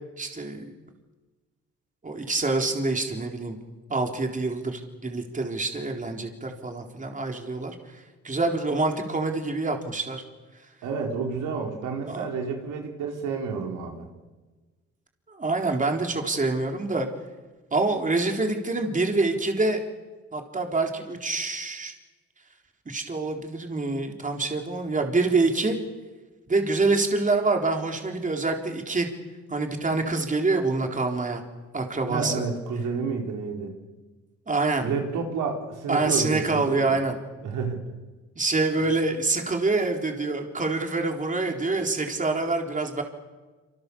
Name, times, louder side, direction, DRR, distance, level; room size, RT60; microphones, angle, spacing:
voice 1, 0.2-0.7 2.0-3.6 3.9-7.8 8.2-10.2 12.1-12.3 15.3-17.1 17.7-19.8 20.3-21.9 22.9-25.8 26.5-29.1 29.5-31.4 31.7-32.3 34.5-34.9 35.9-37.2 38.4-43.0, right 3 dB, 25° right, 3 dB, 4.0 m, -26 dB
voice 2, 10.8-14.1 32.1-33.7 34.8-37.0 37.4-37.8, right 5 dB, 80° right, 1 dB, 4.7 m, -30 dB
27.5 x 26.5 x 7.1 m, 1.2 s
cardioid pair, 90°, 30 cm